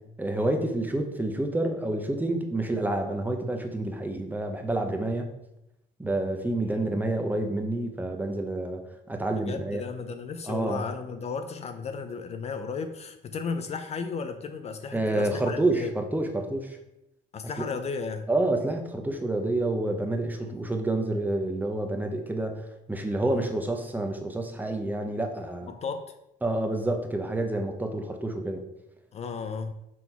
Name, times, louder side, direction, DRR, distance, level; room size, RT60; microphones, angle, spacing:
voice 1, 0.2-5.3 6.0-9.8 10.5-10.8 14.9-16.8 17.6-17.7 18.3-22.6 22.9-25.7 26.4-28.6, right 2 dB, 10° right, 5 dB, 0.8 m, -28 dB
voice 2, 6.7-7.0 9.3-15.9 17.3-18.3 20.4-20.6 23.2-23.4 25.7-26.1 29.1-29.7, left 5 dB, 40° left, 7 dB, 0.5 m, -35 dB
6.1 x 3.8 x 4.5 m, 0.85 s
cardioid pair, 110°, 17 cm